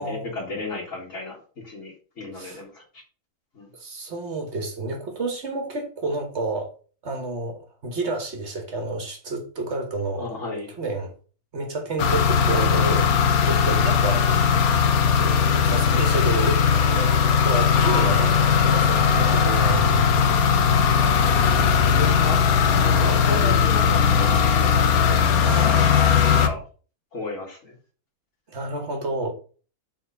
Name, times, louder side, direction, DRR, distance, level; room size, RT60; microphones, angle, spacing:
voice 1, 0.0-1.4 1.6-3.0 3.5-3.7 10.2-10.7 21.4-22.4 22.7-25.5 25.9-26.6 27.1-27.8, left 3 dB, 60° left, 2.1 m, -33 dB
voice 2, 3.7-6.7 7.0-10.3 10.8-11.1 11.5-13.1 13.4-14.7 15.2-17.1 17.4-20.4 23.4-23.5 25.4-26.0 28.5-29.3, right 2 dB, 50° right, 1.5 m, -30 dB
sound 1, 12.0-26.5, left 6 dB, 80° left, 1.2 m, -19 dB
4.3 x 4.2 x 5.5 m
omnidirectional pair, 1.6 m